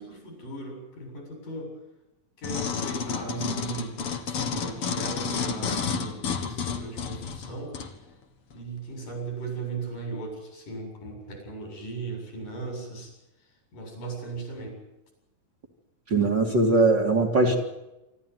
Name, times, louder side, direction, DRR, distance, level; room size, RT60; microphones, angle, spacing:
voice 1, 0.0-1.7 2.4-4.0 4.2-7.8 8.5-13.1 13.7-14.8, right 3 dB, 75° left, 3 dB, 9.0 m, -37 dB
sound 1, 2.4-7.9 8.5-8.6, left 5 dB, 50° left, 2.3 m, -30 dB
voice 2, 16.1-17.6, right 2 dB, 35° right, 3 dB, 2.7 m, -21 dB
26.0 x 14.0 x 9.5 m, 0.94 s
omnidirectional pair, 3.8 m